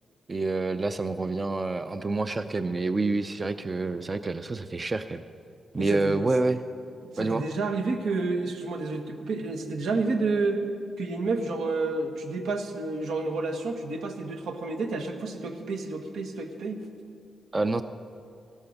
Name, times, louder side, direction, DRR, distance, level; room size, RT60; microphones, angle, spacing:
voice 1, 0.3-5.2 5.7-6.6 7.2-7.4 17.5-17.8, right 3 dB, 20° right, 10 dB, 0.4 m, -27 dB
voice 2, 5.8-6.1 7.1-10.6 11.0-16.8, right 3 dB, 85° right, 5 dB, 1.6 m, -30 dB
15.5 x 12.5 x 6.6 m, 2.4 s
wide cardioid pair, 170°, 0 cm